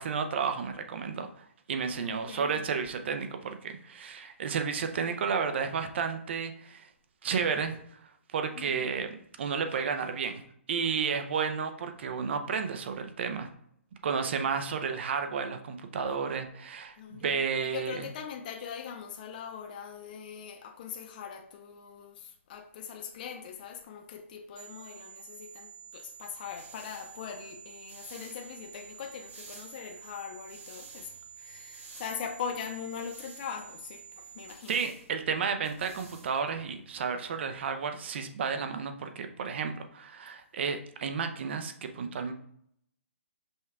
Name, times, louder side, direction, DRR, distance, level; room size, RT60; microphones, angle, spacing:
voice 1, 0.0-6.8 7.2-7.8 8.3-9.1 9.4-10.4 10.7-13.5 14.0-18.1 34.7-42.3, right 6 dB, 50° right, 0.5 m, -32 dB
voice 2, 2.0-2.6 8.6-8.9 17.0-17.4 17.7-31.1 31.4-34.8, left 7 dB, 40° left, 0.5 m, -41 dB
sound 1, 24.6-34.6, right 7 dB, 25° right, 1.0 m, -49 dB
sound 2, 26.1-37.1, right 3 dB, 80° right, 1.5 m, -55 dB
5.3 x 2.3 x 3.5 m
hypercardioid pair, 150°, 8 cm